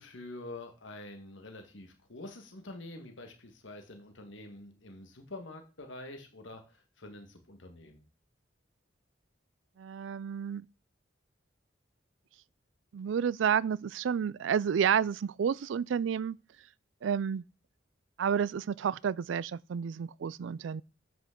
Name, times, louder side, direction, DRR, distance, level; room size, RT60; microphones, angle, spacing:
voice 1, 0.0-8.0, left 2 dB, 90° left, 1.6 m, -46 dB
voice 2, 9.8-10.7 12.9-16.4 17.0-17.4 18.2-20.8, right 7 dB, 80° right, 0.3 m, -30 dB
9.2 x 8.3 x 3.8 m
head